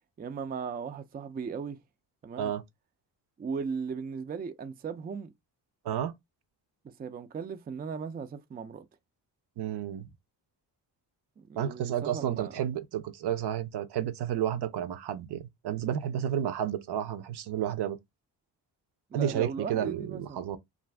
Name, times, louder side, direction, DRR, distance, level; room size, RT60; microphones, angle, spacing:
voice 1, 0.2-1.8 2.2-2.5 3.4-5.3 6.8-8.8 11.4-12.5 19.1-20.4, right 5 dB, 25° right, 0.4 m, -37 dB
voice 2, 9.6-10.1 11.6-18.0 19.1-20.6, right 10 dB, 65° right, 0.6 m, -31 dB
2.5 x 2.4 x 3.2 m
cardioid pair, 85°, 43 cm